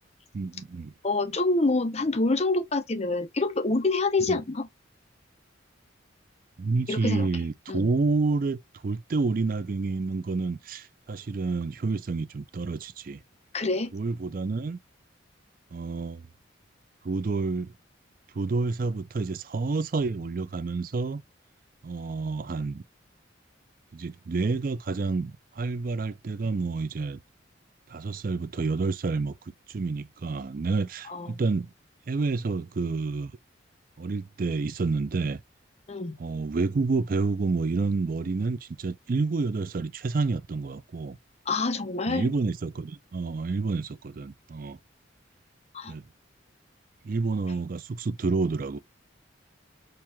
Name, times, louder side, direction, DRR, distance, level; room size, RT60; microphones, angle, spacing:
voice 1, 0.3-0.9 4.2-4.4 6.6-13.2 13.9-14.8 15.7-16.3 17.0-17.7 18.3-21.2 21.8-22.8 23.9-27.2 27.9-29.4 29.7-31.7 32.1-33.3 34.0-35.4 36.2-41.2 42.1-44.8 45.9-46.1 47.0-48.8, right 3 dB, 45° right, 0.4 m, -29 dB
voice 2, 1.0-4.7 6.9-7.3 7.7-7.9 13.5-13.9 31.1-31.4 35.9-36.2 41.5-42.3 45.7-45.9, left 3 dB, 35° left, 0.7 m, -26 dB
4.5 x 2.5 x 3.5 m
head